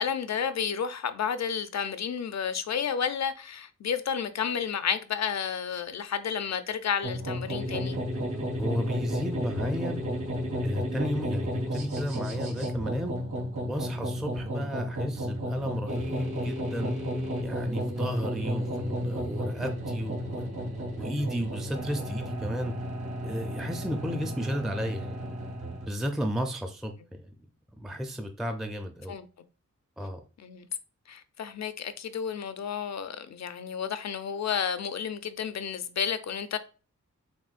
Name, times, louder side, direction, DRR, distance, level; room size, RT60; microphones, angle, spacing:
voice 1, 0.0-8.0 29.1-29.3 30.4-30.7 31.1-36.6, left 7 dB, 65° left, 0.5 m, -31 dB
sound 1, 7.0-25.9, equal, 85° right, 1.7 m, -32 dB
voice 2, 8.6-10.0 10.6-13.1 13.6-16.9 17.4-20.5 21.0-22.7 23.2-25.4 25.9-27.3 27.8-29.2 30.0-30.2, equal, ahead, 0.4 m, -33 dB
6.0 x 2.2 x 2.4 m
wide cardioid pair, 85°, 29 cm